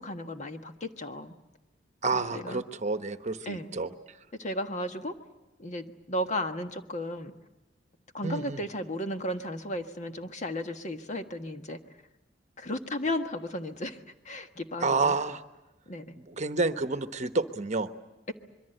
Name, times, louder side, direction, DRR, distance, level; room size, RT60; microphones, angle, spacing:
voice 1, 0.0-1.3 2.1-2.6 3.4-3.7 4.4-5.1 5.6-7.3 8.1-11.8 12.6-14.0 14.2-15.1 15.9-16.1, left 1 dB, 40° left, 7 dB, 1.4 m, -34 dB
voice 2, 2.0-3.9 8.2-8.6 14.8-15.4 16.2-17.9, right 3 dB, 40° right, 10 dB, 1.1 m, -29 dB
25.5 x 22.5 x 8.0 m, 1.0 s
head